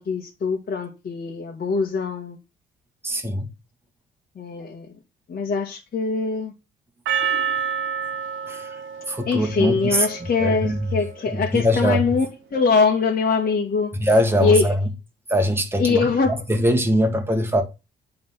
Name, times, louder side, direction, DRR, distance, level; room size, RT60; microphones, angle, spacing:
voice 1, 0.0-2.4 4.4-4.9 5.3-6.5 9.3-12.3 12.5-13.9 14.4-14.7 15.8-16.4, left 4 dB, 50° left, 1.7 m, -22 dB
voice 2, 3.0-3.5 8.5-8.8 9.1-10.1 10.4-10.9 11.3-12.0 13.9-14.8 15.3-16.0 16.5-17.6, equal, 10° right, 1.8 m, -21 dB
Percussion, 7.1-11.5, right 7 dB, 80° right, 1.1 m, -29 dB
8.7 x 3.8 x 5.8 m
cardioid pair, 90°, 20 cm